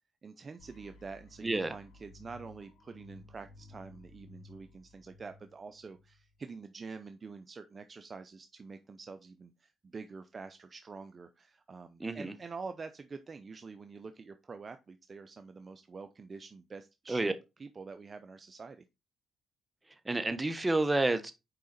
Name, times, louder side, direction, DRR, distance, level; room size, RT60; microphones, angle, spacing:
voice 1, 0.2-17.3 17.6-18.8, right 4 dB, 40° right, 0.6 m, -46 dB
sound 1, 0.6-6.5, left 2 dB, 90° left, 2.0 m, -56 dB
voice 2, 1.4-1.7 12.0-12.3 17.1-17.3 20.0-21.3, right 2 dB, 15° right, 1.2 m, -29 dB
6.6 x 4.9 x 4.1 m
cardioid pair, 75°, 0 cm